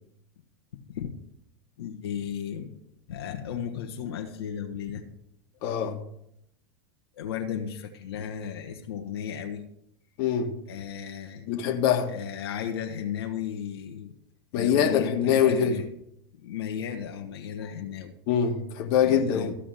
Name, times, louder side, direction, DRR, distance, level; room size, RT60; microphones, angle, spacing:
voice 1, 1.8-2.7 3.1-5.0 7.1-9.6 10.7-11.5 12.1-14.1 14.5-15.9 16.3-18.1 19.0-19.5, left 8 dB, 80° left, 1.4 m, -35 dB
voice 2, 5.6-6.0 10.2-10.5 11.5-12.1 14.5-15.8 18.3-19.5, left 8 dB, 55° left, 1.6 m, -24 dB
15.0 x 5.0 x 7.6 m
hypercardioid pair, 100°, 13 cm